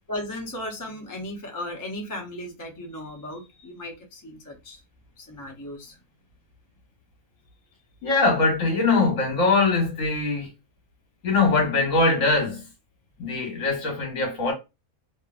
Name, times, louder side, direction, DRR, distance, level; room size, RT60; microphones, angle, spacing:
voice 1, 0.1-4.8 5.1-6.0, left 1 dB, 25° left, 0.4 m, -36 dB
voice 2, 8.0-10.5 11.2-12.6 13.2-14.5, left 3 dB, 65° left, 1.5 m, -22 dB
2.9 x 2.4 x 2.4 m
omnidirectional pair, 1.6 m